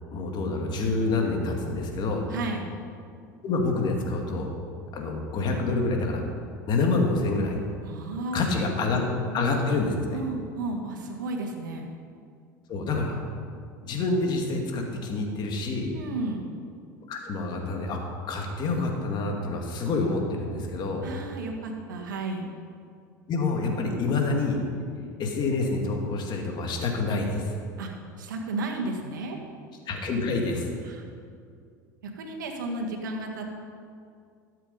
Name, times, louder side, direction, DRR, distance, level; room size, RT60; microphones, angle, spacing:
voice 1, 0.1-2.2 3.4-4.5 4.9-6.2 6.7-7.6 8.3-9.0 9.3-10.2 12.7-13.2 13.8-15.9 17.1-21.0 23.3-24.6 25.2-27.5 29.9-30.7, left 3 dB, 45° left, 1 dB, 2.3 m, -27 dB
voice 2, 2.3-2.7 7.8-8.4 10.1-11.9 15.9-16.5 21.0-22.5 27.8-27.9 28.2-29.4 30.9-31.0 32.0-33.5, right 2 dB, 80° right, 2 dB, 1.5 m, -33 dB
13.0 x 7.4 x 5.4 m, 2.3 s
hypercardioid pair, 80°, 10 cm